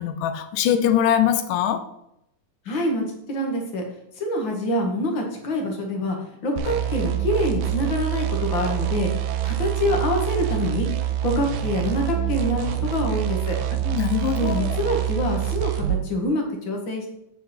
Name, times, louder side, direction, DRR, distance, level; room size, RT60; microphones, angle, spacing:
voice 1, 0.0-1.8 13.9-14.8, left 10 dB, 75° left, 9 dB, 2.1 m, -22 dB
voice 2, 2.6-3.8 4.2-6.2 6.4-9.1 9.4-10.9 11.2-13.6 14.3-17.1, left 1 dB, 45° left, 1 dB, 1.6 m, -25 dB
sound 1, 6.6-16.0, right 12 dB, 80° right, 2.5 m, -26 dB
8.2 x 7.5 x 4.3 m, 0.80 s
omnidirectional pair, 4.1 m